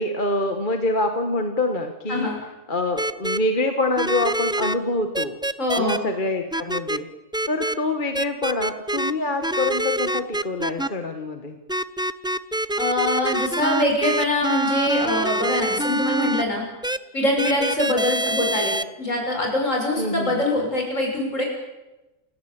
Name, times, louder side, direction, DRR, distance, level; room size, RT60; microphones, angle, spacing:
voice 1, 0.0-2.3 2.7-5.4 5.8-7.1 7.5-11.6 20.0-20.4, left 2 dB, 35° left, 5 dB, 1.8 m, -25 dB
sound 1, 3.0-3.4 4.0-4.7 5.1-6.0 6.5-7.0 7.3-7.7 8.1-9.1 9.4-10.9 11.7-16.4 16.8-17.0 17.4-18.8, right 1 dB, 5° right, 0.4 m, -25 dB
voice 2, 5.6-6.1 12.8-16.6 17.1-21.4, left 1 dB, 70° left, 1 dB, 7.4 m, -24 dB
29.0 x 17.0 x 8.9 m, 1.0 s
omnidirectional pair, 1.4 m